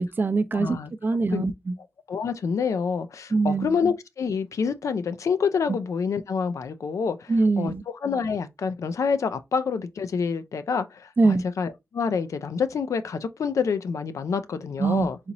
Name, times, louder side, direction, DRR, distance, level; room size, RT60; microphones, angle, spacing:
voice 1, 0.0-0.8 1.0-1.7 3.3-3.8 7.3-7.8 11.2-11.4 14.8-15.1, right 3 dB, 40° right, 0.4 m, -23 dB
voice 2, 0.5-0.9 1.3-1.4 2.1-7.7 8.0-15.2, left 5 dB, 90° left, 0.4 m, -27 dB
4.1 x 2.9 x 2.6 m
wide cardioid pair, 85°, 5 cm